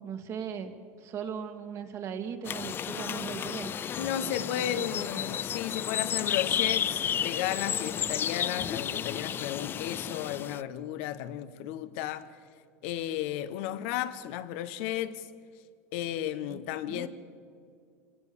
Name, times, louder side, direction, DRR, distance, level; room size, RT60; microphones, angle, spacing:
voice 1, 0.0-3.7 4.0-5.3 16.5-16.6 16.9-17.1, right 7 dB, 45° right, 2.3 m, -39 dB
sound 1, 2.4-10.6, left 9 dB, 30° left, 0.5 m, -32 dB
voice 2, 4.0-12.3 12.8-15.3 15.9-17.1, left 12 dB, 70° left, 1.3 m, -34 dB
27.0 x 18.0 x 7.2 m
supercardioid pair, 110°, 7 cm